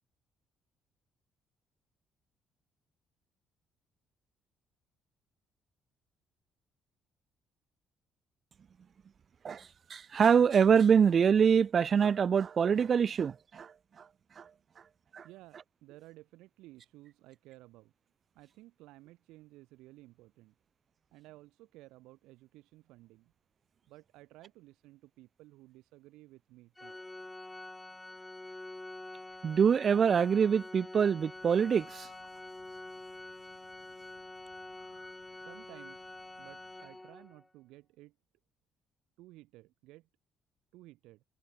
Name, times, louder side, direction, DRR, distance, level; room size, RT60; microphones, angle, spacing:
voice 1, 9.4-13.7 14.4-14.5 15.1-15.2 29.4-32.1, right 7 dB, 45° right, 0.4 m, -25 dB
voice 2, 15.2-17.9 18.3-20.5 21.1-23.3 23.9-27.0 35.4-36.1 36.4-38.1 39.2-40.1 40.7-41.2, right 18 dB, 70° right, 3.0 m, -55 dB
Organ, 26.8-37.5, left 2 dB, 15° left, 2.4 m, -47 dB
Bird, 31.3-37.1, left 31 dB, 75° left, 3.3 m, -66 dB
hypercardioid pair, 45°, 0 cm